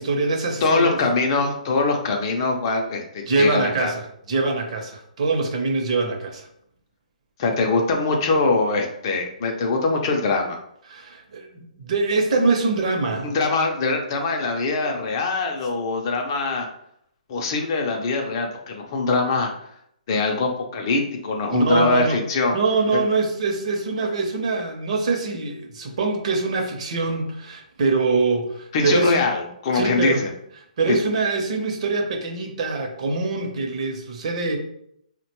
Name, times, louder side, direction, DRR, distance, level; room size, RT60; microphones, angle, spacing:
voice 1, 0.0-1.0 3.3-4.0 4.3-6.5 10.9-13.3 21.5-22.2 22.5-29.2 29.7-30.2 30.8-34.6, right 3 dB, 50° right, 2 dB, 0.7 m, -23 dB
voice 2, 0.6-3.9 7.4-10.6 13.2-16.7 17.3-19.7 20.1-22.6 22.9-23.0 28.7-30.3 30.9-31.0, left 3 dB, 30° left, 2 dB, 0.4 m, -23 dB
3.6 x 2.1 x 2.9 m, 0.72 s
hypercardioid pair, 165°, 4 cm